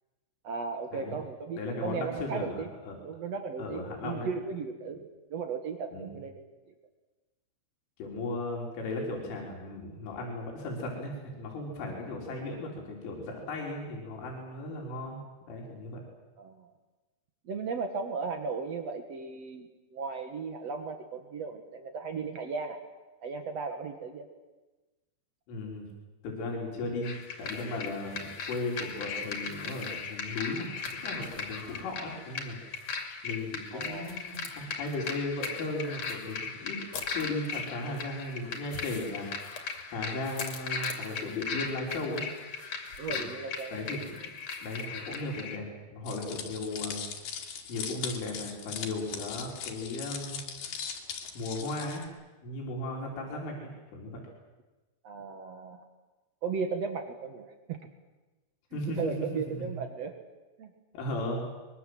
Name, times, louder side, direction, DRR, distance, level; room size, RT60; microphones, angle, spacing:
voice 1, 0.4-2.7 3.0-5.0 5.3-6.7 16.4-16.7 17.4-22.8 23.2-24.2 33.7-34.2 43.0-43.8 55.0-55.8 56.4-57.8 58.7-60.1 60.6-60.7, right 5 dB, 80° right, 6 dB, 1.4 m, -36 dB
voice 2, 1.6-3.0 3.6-4.3 5.9-6.2 8.0-15.2 15.5-16.0 25.5-25.9 26.2-36.8 37.1-42.3 43.1-43.3 43.7-44.3 44.6-45.7 45.9-47.0 47.7-50.4 51.4-52.1 52.4-54.2 58.7-59.8 60.9-61.5, left 2 dB, 90° left, -1 dB, 6.0 m, -36 dB
sound 1, 27.0-45.6, left 5 dB, 40° left, 3.1 m, -38 dB
sound 2, 46.1-52.0, left 7 dB, 60° left, 3.6 m, -39 dB
24.0 x 22.5 x 7.8 m, 1.2 s
omnidirectional pair, 5.5 m